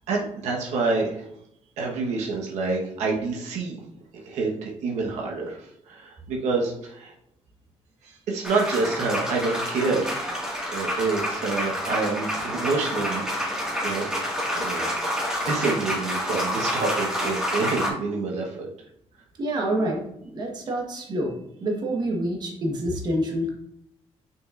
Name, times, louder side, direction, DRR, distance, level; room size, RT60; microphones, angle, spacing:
voice 1, 0.1-1.3 1.8-3.8 4.2-7.1 8.0-10.1 10.7-14.1 14.5-14.9 15.4-18.7, right 3 dB, 85° right, -1 dB, 1.3 m, -27 dB
sound 1, 8.4-17.9, equal, 5° right, 1.9 m, -28 dB
voice 2, 19.4-20.0 20.3-21.3 21.6-23.6, right 1 dB, 40° right, 0 dB, 1.3 m, -27 dB
6.2 x 6.1 x 2.5 m, 0.75 s
cardioid pair, 150°, 11 cm